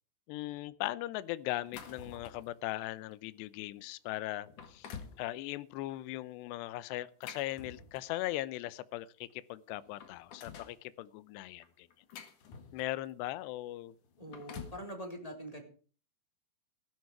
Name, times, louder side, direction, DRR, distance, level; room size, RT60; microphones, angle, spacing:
voice 1, 0.3-11.9 12.7-13.9, left 16 dB, 80° left, 16 dB, 2.9 m, -39 dB
sound 1, 1.5-2.5 3.1-3.3 3.9-4.0 4.4-5.2 6.9-8.2 9.3-9.4 9.7-10.8 11.6-13.1 14.0-14.9, left 6 dB, 55° left, 2.8 m, -48 dB
voice 2, 14.2-15.6, equal, 10° left, 3 dB, 3.6 m, -43 dB
16.0 x 12.5 x 4.8 m, 0.39 s
omnidirectional pair, 5.1 m